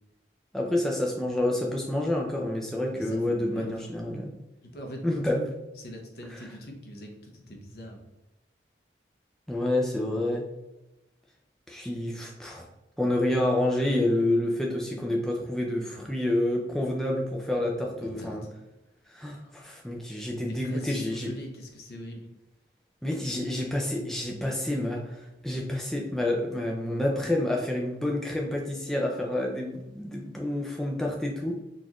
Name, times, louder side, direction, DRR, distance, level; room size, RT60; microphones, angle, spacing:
voice 1, 0.5-4.3 5.0-5.4 9.5-10.5 11.7-12.7 13.0-18.4 19.1-21.3 23.0-31.6, left 1 dB, 5° left, -2 dB, 0.4 m, -28 dB
voice 2, 2.9-3.2 3.5-3.8 4.6-5.5 5.8-8.0 18.0-18.5 19.4-19.6 20.5-22.3, equal, 60° left, 2 dB, 0.7 m, -42 dB
3.9 x 2.5 x 2.9 m, 0.96 s
head